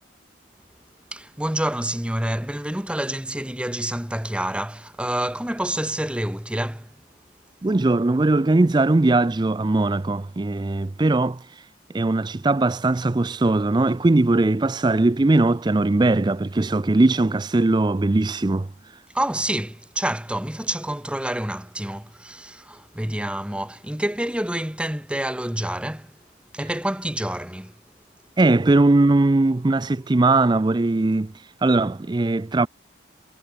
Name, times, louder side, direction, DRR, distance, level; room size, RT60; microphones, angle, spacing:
voice 1, 1.1-6.9 19.1-26.1 26.5-27.7, right 1 dB, 5° right, 1.0 m, -28 dB
voice 2, 7.6-19.0 26.6-26.7 28.4-32.7, right 2 dB, 20° right, 0.4 m, -20 dB
head